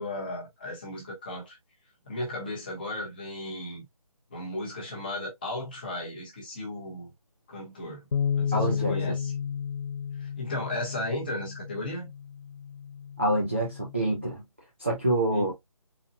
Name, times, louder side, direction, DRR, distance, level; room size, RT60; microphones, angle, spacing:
voice 1, 0.0-1.6 2.0-3.8 4.3-7.1 7.5-8.0 8.3-9.3 10.2-12.1 15.3-15.5, left 1 dB, 15° left, 0.8 m, -35 dB
Bass guitar, 8.1-14.4, left 7 dB, 55° left, 0.4 m, -33 dB
voice 2, 8.5-8.9 13.2-14.4 14.8-15.5, right 1 dB, 20° right, 0.4 m, -26 dB
4.0 x 2.2 x 2.5 m
figure-of-eight pair, 170°, 19 cm